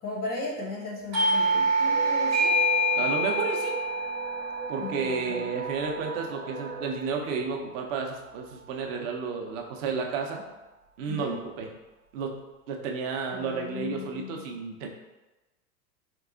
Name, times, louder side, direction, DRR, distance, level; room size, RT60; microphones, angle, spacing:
voice 1, 0.0-2.6 4.8-5.5 11.1-11.5 13.3-14.5, left 3 dB, 20° left, -2 dB, 0.4 m, -37 dB
Doorbell, 1.1-6.4, right 1 dB, 85° right, 1.1 m, -26 dB
sound 1, 1.8-6.9, right 4 dB, 30° right, 0.9 m, -39 dB
voice 2, 3.0-3.8 4.7-10.4 11.0-11.7 12.1-12.4 12.7-14.9, right 5 dB, 55° right, 2 dB, 0.6 m, -32 dB
3.6 x 3.0 x 2.4 m, 1.1 s
hypercardioid pair, 105°, 48 cm